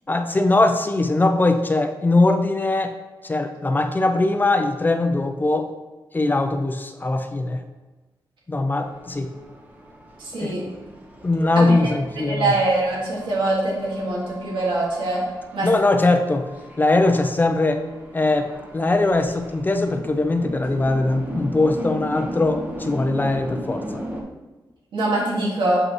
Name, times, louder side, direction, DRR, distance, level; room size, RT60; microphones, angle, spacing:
voice 1, 0.1-2.9 3.2-5.7 6.1-7.6 8.5-9.3 10.4-10.5 11.2-12.5 15.6-16.5 16.8-17.8 18.1-24.0, left 2 dB, 25° left, 7 dB, 0.6 m, -21 dB
sound 1, 8.7-24.2, equal, 20° right, 1.2 m, -37 dB
voice 2, 10.2-10.6 11.6-11.7 12.2-15.2 15.5-15.7 24.9-25.8, right 2 dB, 85° right, -4 dB, 2.1 m, -23 dB
7.3 x 5.2 x 3.1 m, 1.2 s
wide cardioid pair, 100°, 8 cm